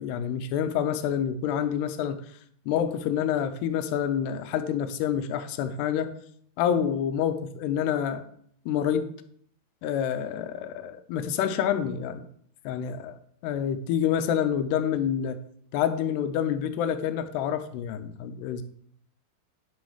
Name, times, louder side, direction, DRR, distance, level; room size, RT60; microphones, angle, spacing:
voice 1, 0.0-2.2 2.7-6.2 6.6-8.3 8.7-9.1 9.8-12.3 12.7-15.4 15.7-18.6, left 9 dB, 85° left, 10 dB, 2.8 m, -27 dB
9.5 x 6.2 x 4.9 m, 0.64 s
omnidirectional pair, 4.7 m